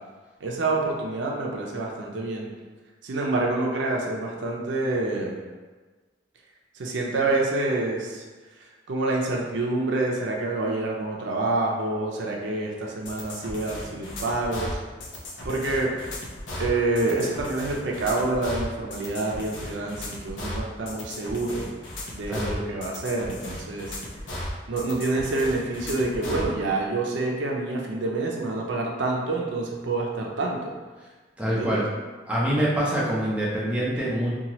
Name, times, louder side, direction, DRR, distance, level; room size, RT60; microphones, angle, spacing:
voice 1, 0.4-2.5 3.0-5.4 6.7-8.2 8.9-14.8 15.4-16.0 16.6-21.6 22.1-23.9 24.7-30.7 31.5-31.8, right 2 dB, 75° right, -1 dB, 0.5 m, -27 dB
sound 1, 13.1-26.5, left 1 dB, 80° left, 0.6 m, -36 dB
voice 2, 31.4-31.9 32.3-34.3, equal, 5° right, -6 dB, 0.5 m, -25 dB
2.8 x 2.3 x 2.9 m, 1.3 s
head